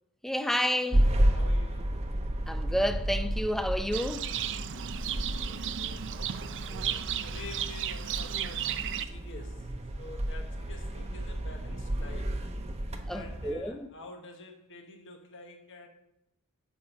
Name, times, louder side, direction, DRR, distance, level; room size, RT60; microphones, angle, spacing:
voice 1, 0.2-1.0 2.5-4.3 13.1-13.9, equal, ahead, 0.4 m, -30 dB
sound 1, 0.9-13.5, right 1 dB, 30° right, 0.8 m, -32 dB
voice 2, 1.3-2.0 4.7-6.0 6.3-9.7 10.0-12.4 13.1-15.9, left 2 dB, 60° left, 1.1 m, -48 dB
Livestock farm animals working animals, 3.9-9.1, right 10 dB, 55° right, 0.5 m, -35 dB
10.5 x 4.3 x 6.9 m
head